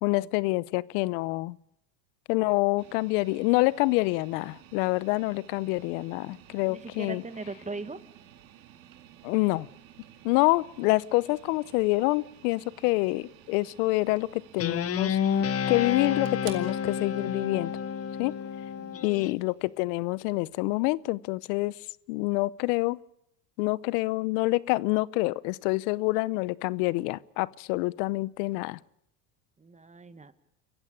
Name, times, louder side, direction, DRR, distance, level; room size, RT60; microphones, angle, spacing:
voice 1, 0.0-1.6 2.3-7.2 9.2-9.7 10.2-17.7 18.2-18.3 19.0-21.8 22.1-23.0 23.6-28.8, left 22 dB, 70° left, 22 dB, 0.9 m, -27 dB
sound 1, 2.8-20.9, right 11 dB, 80° right, 2.4 m, -53 dB
voice 2, 6.7-8.0 18.8-19.1 29.6-30.3, right 3 dB, 15° right, 12 dB, 1.8 m, -39 dB
Guitar, 14.6-19.3, left 7 dB, 30° left, 1.0 m, -30 dB
27.5 x 15.5 x 8.5 m, 0.76 s
supercardioid pair, 95°, 50 cm